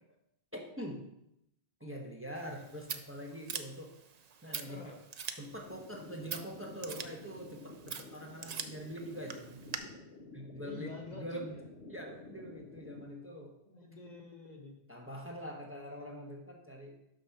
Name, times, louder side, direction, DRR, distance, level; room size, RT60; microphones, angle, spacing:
voice 1, 0.5-1.1 1.8-3.9 4.4-5.0 5.3-9.5 10.3-11.6 11.9-13.6 14.9-17.0, equal, 15° right, 0 dB, 1.1 m, -44 dB
Scissors, 2.3-9.8, right 7 dB, 50° right, 0.6 m, -45 dB
voice 2, 4.4-5.0 10.6-11.4 13.7-14.7, left 3 dB, 45° left, 1 dB, 1.2 m, -48 dB
sound 1, 5.6-13.1, left 3 dB, 85° left, 1.0 m, -51 dB
6.5 x 6.2 x 5.7 m, 0.80 s
omnidirectional pair, 1.1 m